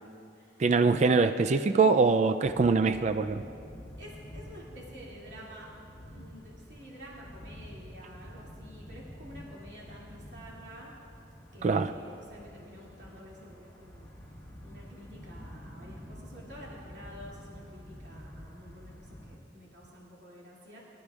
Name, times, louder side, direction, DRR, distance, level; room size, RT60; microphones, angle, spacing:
voice 1, 0.6-3.4 11.6-11.9, right 4 dB, 40° right, 10 dB, 0.3 m, -23 dB
sound 1, 2.4-19.4, equal, 10° left, 2.0 m, -48 dB
voice 2, 4.0-10.9 11.5-14.1 14.6-20.8, equal, 70° right, -5 dB, 2.4 m, -49 dB
24.5 x 13.0 x 2.4 m, 2.5 s
head